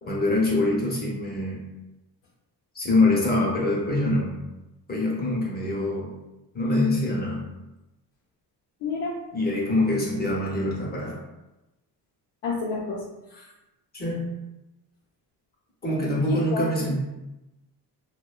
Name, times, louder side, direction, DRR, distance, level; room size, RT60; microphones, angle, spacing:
voice 1, 0.0-1.6 2.7-4.3 4.9-6.1 6.5-7.5 9.3-11.2 13.9-14.2 15.8-17.0, left 2 dB, 25° left, -3 dB, 0.7 m, -24 dB
voice 2, 8.8-9.2 12.4-13.0 13.3-13.5 16.3-16.9, left 4 dB, 80° left, -5 dB, 0.6 m, -29 dB
2.7 x 2.1 x 2.3 m, 0.97 s
cardioid pair, 105°, 41 cm